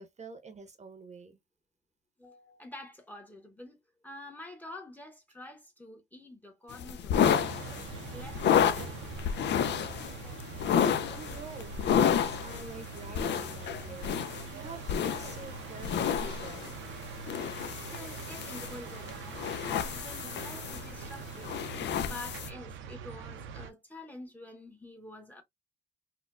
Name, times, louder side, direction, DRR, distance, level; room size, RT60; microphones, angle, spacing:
voice 1, 0.0-1.4 11.1-16.7 20.4-20.5, right 3 dB, 35° right, 0.8 m, -47 dB
voice 2, 2.2-3.8 4.0-9.0 10.2-10.7 17.8-25.4, left 2 dB, 10° left, 1.0 m, -48 dB
sound 1, 6.7-22.5, left 8 dB, 60° left, 0.5 m, -31 dB
sound 2, 7.3-23.7, right 7 dB, 80° right, 0.7 m, -44 dB
4.2 x 2.3 x 2.4 m
cardioid pair, 90°, 20 cm